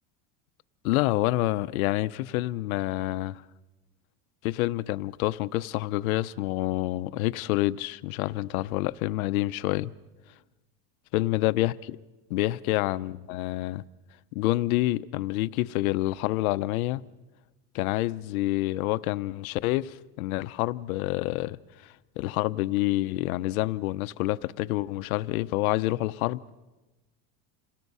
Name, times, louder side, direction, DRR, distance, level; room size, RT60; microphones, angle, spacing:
voice 1, 0.8-3.4 4.4-9.9 11.1-12.0 12.3-13.8 14.3-17.0 17.7-26.6, left 18 dB, 85° left, 0.7 m, -28 dB
27.5 x 17.5 x 5.5 m
cardioid pair, 180°, 42 cm